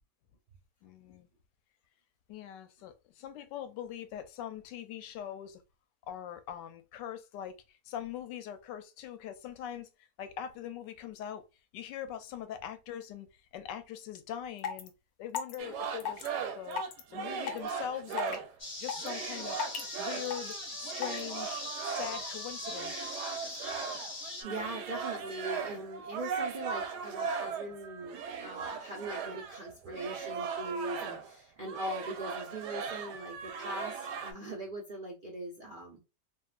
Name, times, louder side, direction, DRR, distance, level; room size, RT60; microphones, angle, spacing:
voice 1, 0.8-1.3 2.3-5.6 6.1-11.4 11.7-13.3 13.5-14.9 15.2-16.3 16.5-18.4 18.8-19.6 20.0-22.9, left 10 dB, 90° left, 1.2 m, -42 dB
sound 1, 14.1-14.2 14.6-14.9 15.3-15.6 16.0-16.3 16.7-17.0 17.5-17.7 18.1-18.4 18.9-19.1 19.6-19.8 20.3-20.5 21.0-21.2, left 7 dB, 70° left, 1.1 m, -34 dB
sound 2, 15.6-18.6 18.9-31.4 31.6-34.3, right 6 dB, 80° right, 1.2 m, -38 dB
sound 3, 18.6-24.4, left 2 dB, 20° left, 1.1 m, -41 dB
voice 2, 24.4-36.0, right 1 dB, 60° right, 0.5 m, -41 dB
3.6 x 2.4 x 2.3 m
omnidirectional pair, 1.8 m